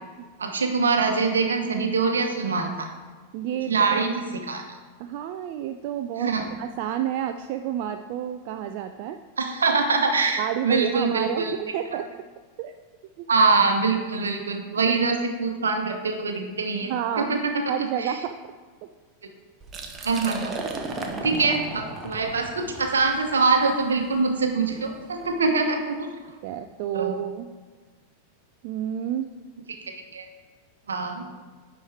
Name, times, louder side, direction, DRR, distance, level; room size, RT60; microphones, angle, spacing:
voice 1, 0.4-2.9 3.7-4.6 6.2-6.4 9.4-11.5 13.3-17.6 18.0-18.1 20.0-20.5 21.2-26.1 26.9-27.1 30.1-30.3 30.9-31.2, right 4 dB, 70° right, 4 dB, 0.9 m, -24 dB
voice 2, 3.3-4.0 5.0-9.2 10.4-12.2 12.6-12.8 13.2-13.3 16.9-17.4 17.7-18.4 18.8-18.9 21.1-21.3 26.4-27.5 28.6-29.3, right 10 dB, 45° right, 7 dB, 0.3 m, -30 dB
Liquid, 19.6-25.4, right 3 dB, 20° right, 0.8 m, -36 dB
9.8 x 4.4 x 3.3 m, 1.5 s
figure-of-eight pair, 90°, 0 cm